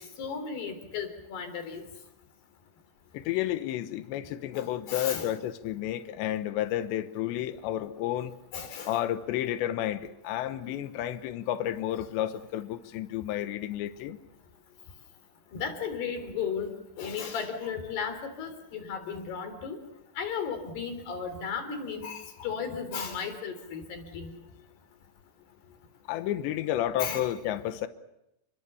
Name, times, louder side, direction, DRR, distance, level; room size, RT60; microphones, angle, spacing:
voice 1, 0.2-1.8 4.5-5.3 8.5-9.0 15.5-16.7 17.0-19.8 20.2-24.3 27.0-27.3, left 6 dB, 70° left, 8 dB, 5.5 m, -35 dB
voice 2, 3.1-8.3 8.9-14.2 26.1-27.9, left 12 dB, 90° left, 10 dB, 3.3 m, -31 dB
30.0 x 23.0 x 7.0 m, 0.87 s
omnidirectional pair, 4.9 m